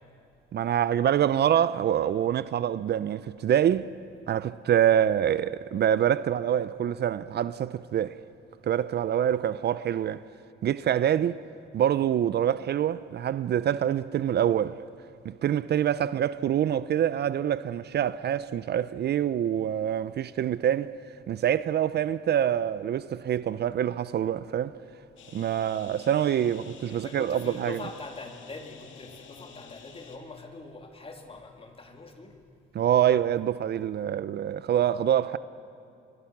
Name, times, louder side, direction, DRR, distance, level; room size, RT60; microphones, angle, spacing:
voice 1, 0.5-3.9 4.3-8.2 8.6-10.2 10.6-11.4 11.7-14.8 15.2-20.9 21.3-24.8 25.3-27.8 32.7-35.4, right 10 dB, 55° right, 0.6 m, -25 dB
sound 1, 25.2-30.2, left 6 dB, 75° left, 2.4 m, -50 dB
voice 2, 26.9-32.4, left 3 dB, 30° left, 2.9 m, -43 dB
27.5 x 22.0 x 6.0 m
cardioid pair, 90°, 20 cm